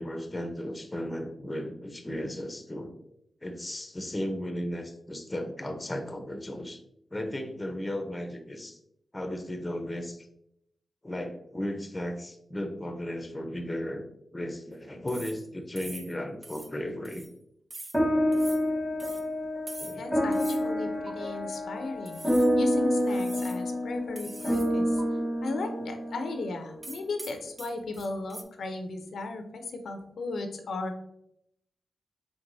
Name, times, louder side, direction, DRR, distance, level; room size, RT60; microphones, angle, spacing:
voice 1, 0.0-3.0 3.4-6.8 7.1-8.8 9.1-10.3 11.0-14.0 14.3-17.2 19.8-20.1 25.1-25.2, left 1 dB, 20° left, 5 dB, 0.7 m, -35 dB
sound 1, 15.1-15.5 15.8-16.1 16.4-16.7 17.0-17.3 17.7-18.0 18.3-18.6 19.0-19.2 19.7-20.0 20.3-20.6 21.1-21.2 22.0-22.5 23.0-23.6 24.2-24.7 25.0-25.1 26.8-28.4, right 2 dB, 30° right, 0.5 m, -44 dB
sound 2, 17.9-26.6, equal, ahead, 1.2 m, -28 dB
voice 2, 20.0-25.0 25.4-31.0, left 3 dB, 80° left, 6 dB, 0.5 m, -36 dB
4.6 x 3.5 x 2.6 m, 0.76 s
cardioid pair, 80°, 0 cm